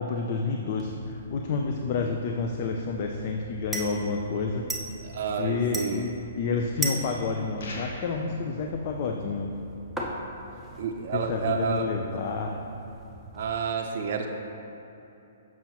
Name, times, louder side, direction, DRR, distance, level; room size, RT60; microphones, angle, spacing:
voice 1, 0.0-4.7 5.4-9.5 11.1-12.5, left 4 dB, 45° left, 2 dB, 0.4 m, -29 dB
sound 1, 0.8-13.6, right 1 dB, ahead, 0.7 m, -40 dB
voice 2, 5.0-6.0 10.8-11.9 13.3-14.3, right 6 dB, 55° right, 2 dB, 0.5 m, -29 dB
sound 2, 7.6-8.3, left 2 dB, 65° left, 1.1 m, -40 dB
7.0 x 6.0 x 3.0 m, 3.0 s
hypercardioid pair, 140°, 0 cm